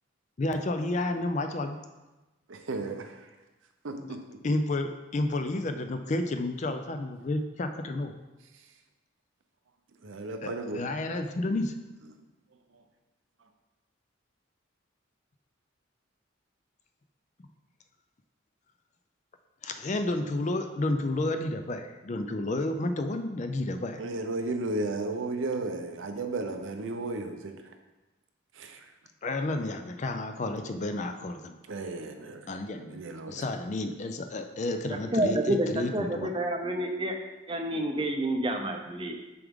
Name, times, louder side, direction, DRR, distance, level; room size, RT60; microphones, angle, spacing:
voice 1, 0.4-1.8 4.0-4.2 4.4-8.1 10.4-11.7 19.6-24.1 29.2-31.5 32.5-33.0 33.3-36.3, left 2 dB, 35° left, 7 dB, 0.4 m, -31 dB
voice 2, 2.5-3.2 3.8-4.4 10.0-10.8 24.0-27.5 28.6-28.8 31.7-32.4 32.9-33.4, right 2 dB, 75° right, 6 dB, 0.6 m, -34 dB
voice 3, 35.1-37.1 37.5-39.2, right 1 dB, 25° right, 3 dB, 0.6 m, -29 dB
6.9 x 4.8 x 3.6 m, 1.1 s
head